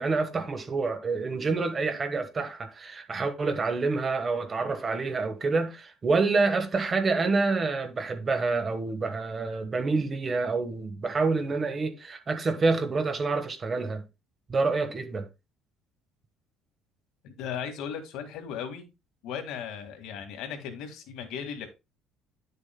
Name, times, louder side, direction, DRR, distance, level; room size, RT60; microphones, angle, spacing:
voice 1, 0.0-14.0 14.5-15.3, right 3 dB, 25° right, 1.3 m, -27 dB
voice 2, 17.2-18.8 19.2-21.7, left 7 dB, 70° left, 1.9 m, -37 dB
10.5 x 6.7 x 2.2 m
cardioid pair, 140°, 0 cm